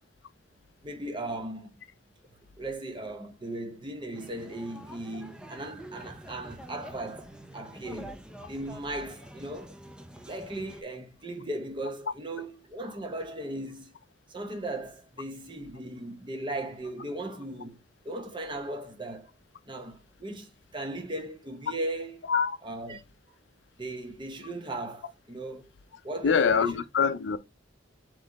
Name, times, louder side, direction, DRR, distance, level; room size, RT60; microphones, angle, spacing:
voice 1, 0.8-1.8 2.6-9.7 10.2-13.9 14.3-19.3 19.7-22.2 22.6-23.0 23.8-25.7 26.0-26.8, right 1 dB, 25° right, 0.9 m, -37 dB
sound 1, 4.1-10.8, right 1 dB, 5° right, 0.5 m, -47 dB
voice 2, 26.2-27.4, left 6 dB, 65° left, 0.4 m, -24 dB
4.0 x 3.1 x 3.9 m
head